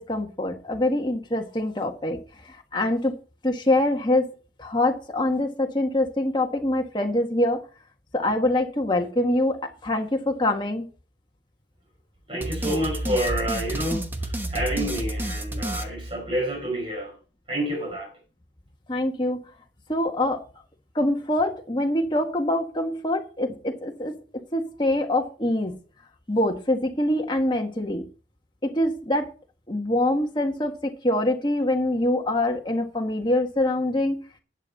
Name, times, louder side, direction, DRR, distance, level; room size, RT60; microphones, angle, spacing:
voice 1, 0.0-2.2 2.7-3.1 3.4-4.3 4.6-7.6 8.1-10.9 18.9-19.4 19.9-20.4 20.9-24.1 24.5-25.7 26.3-28.0 28.6-29.3 29.7-34.2, left 1 dB, 25° left, 1.6 m, -24 dB
voice 2, 12.3-17.2 17.5-18.1, right 1 dB, 30° right, 4.9 m, -28 dB
sound 1, 12.4-16.7, right 1 dB, 10° right, 1.0 m, -30 dB
11.0 x 8.8 x 4.2 m
head